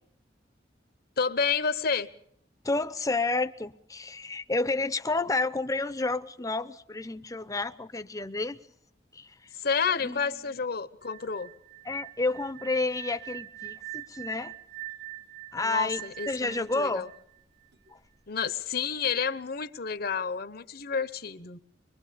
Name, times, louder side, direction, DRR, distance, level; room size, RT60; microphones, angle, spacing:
voice 1, 1.2-2.1 9.5-11.5 15.6-17.1 18.3-21.6, left 5 dB, 55° left, 1.0 m, -30 dB
voice 2, 2.6-8.6 9.1-9.3 10.0-10.2 11.8-14.5 15.5-17.1 17.9-18.0, left 3 dB, 20° left, 0.7 m, -30 dB
sound 1, 11.0-17.9, right 18 dB, 60° right, 1.3 m, -43 dB
24.5 x 22.5 x 5.2 m
head